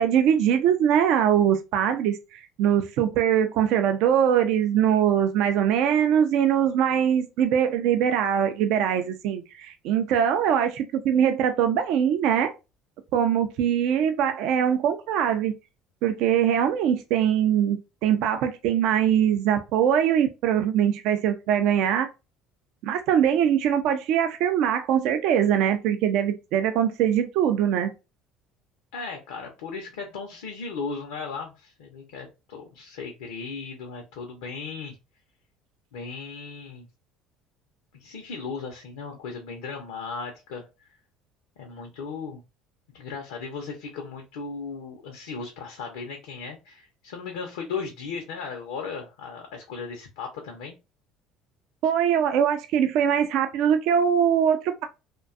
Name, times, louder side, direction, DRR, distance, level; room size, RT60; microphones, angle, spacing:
voice 1, 0.0-12.5 13.1-15.5 16.0-22.1 22.8-27.9 51.8-54.8, right 9 dB, 70° right, 0.3 m, -22 dB
voice 2, 28.9-35.0 35.9-36.9 37.9-40.9 41.6-42.4 42.9-50.8, left 5 dB, 85° left, 0.5 m, -36 dB
2.5 x 2.2 x 2.4 m
supercardioid pair, 80°, 0 cm